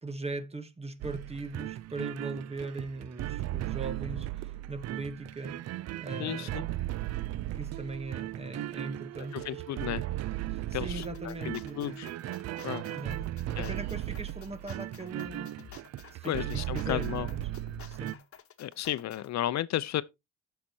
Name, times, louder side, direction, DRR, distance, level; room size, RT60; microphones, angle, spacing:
voice 1, 0.0-4.3 4.7-5.6 6.0-6.7 7.5-9.6 10.5-12.0 12.9-13.2 13.6-15.5 16.1-17.4 17.9-18.2, right 2 dB, 20° right, 1.0 m, -39 dB
sound 1, 1.0-18.1, right 15 dB, 60° right, 0.4 m, -36 dB
voice 2, 6.2-6.6 9.3-10.0 10.7-12.1 12.6-12.8 13.6-13.7 16.3-17.3 18.6-20.0, left 13 dB, 65° left, 0.6 m, -33 dB
sound 2, 11.0-19.3, left 8 dB, 50° left, 1.2 m, -51 dB
14.5 x 5.7 x 2.7 m
cardioid pair, 90°, 30 cm